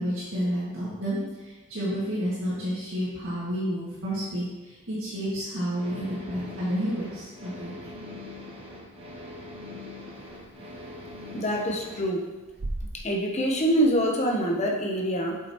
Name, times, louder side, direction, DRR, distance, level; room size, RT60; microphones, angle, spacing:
voice 1, 0.0-7.9, equal, 65° right, -10 dB, 2.0 m, -30 dB
sound 1, 5.7-12.1, left 2 dB, 25° right, 1.0 m, -42 dB
sound 2, 8.5-14.5, right 2 dB, 45° right, 0.7 m, -42 dB
voice 2, 11.3-12.2 12.9-15.4, equal, 30° left, 0 dB, 0.8 m, -25 dB
7.7 x 5.7 x 3.0 m, 1.2 s
head